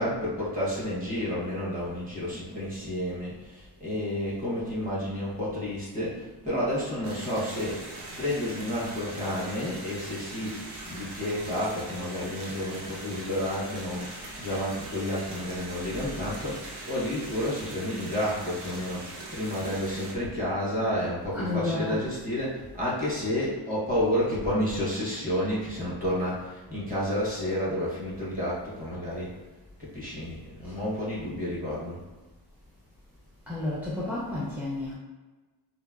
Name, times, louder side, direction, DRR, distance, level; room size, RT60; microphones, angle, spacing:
voice 1, 0.0-7.8 8.2-10.6 10.9-29.3 29.8-32.0, left 1 dB, 20° right, -7 dB, 0.9 m, -30 dB
sound 1, 7.0-20.1, right 2 dB, 85° right, 0.8 m, -41 dB
voice 2, 21.3-22.0 33.5-34.9, left 2 dB, 5° right, -8 dB, 0.4 m, -31 dB
3.9 x 2.1 x 2.3 m, 1.2 s
wide cardioid pair, 175°, 39 cm